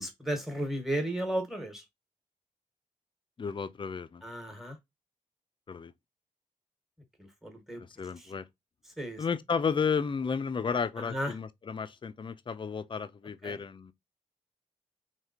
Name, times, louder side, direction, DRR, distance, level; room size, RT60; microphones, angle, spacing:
voice 1, 0.0-1.8 4.2-4.8 7.2-7.8 8.2-8.3 9.0-9.2 11.0-11.3 13.4-13.6, right 1 dB, ahead, 1.4 m, -34 dB
voice 2, 3.4-4.2 5.7-5.9 7.8-8.4 9.2-13.9, left 6 dB, 35° left, 0.5 m, -33 dB
3.4 x 2.8 x 2.8 m
cardioid pair, 75°, 14 cm